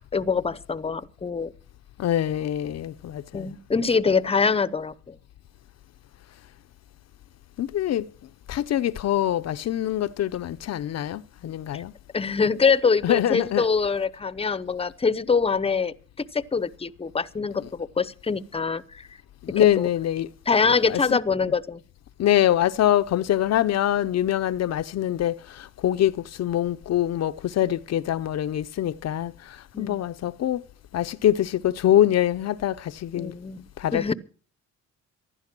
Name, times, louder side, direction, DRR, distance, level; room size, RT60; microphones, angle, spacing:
voice 1, 0.0-1.5 3.3-5.2 11.7-11.8 12.1-19.1 19.6-19.9 20.5-21.8 29.7-30.0 33.2-33.7 33.9-34.1, left 5 dB, 20° left, 0.7 m, -24 dB
voice 2, 2.0-3.5 7.6-8.0 8.5-11.9 13.0-13.6 19.5-20.3 20.8-21.2 22.2-25.3 25.8-29.3 29.8-30.6 30.9-33.3 33.8-34.1, left 12 dB, 60° left, 0.6 m, -24 dB
15.0 x 11.5 x 6.0 m
cardioid pair, 90°, 30 cm